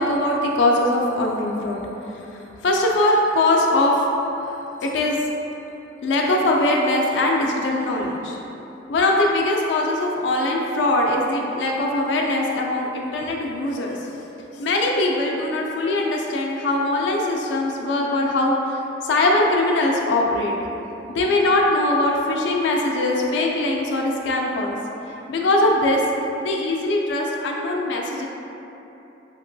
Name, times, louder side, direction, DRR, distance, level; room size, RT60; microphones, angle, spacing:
voice 1, 0.0-4.1 4.8-5.2 6.0-8.4 8.9-14.2 14.5-20.6 21.1-24.8 25.1-26.0 26.4-28.3, left 1 dB, 70° left, 0 dB, 0.3 m, -21 dB
2.9 x 2.8 x 2.6 m, 3.0 s
head